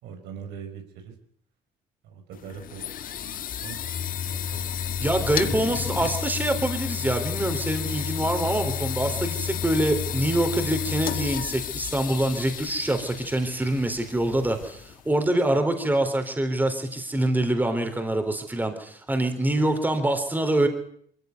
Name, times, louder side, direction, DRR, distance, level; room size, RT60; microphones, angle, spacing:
voice 1, 0.0-1.1 2.0-3.8 4.2-4.7, right 7 dB, 85° right, 5 dB, 4.7 m, -42 dB
sound 1, 2.3-15.1, left 9 dB, 55° left, 1.5 m, -31 dB
voice 2, 5.0-20.7, right 1 dB, 10° right, 6 dB, 3.6 m, -25 dB
23.0 x 15.0 x 9.3 m, 0.65 s
cardioid pair, 110°, 17 cm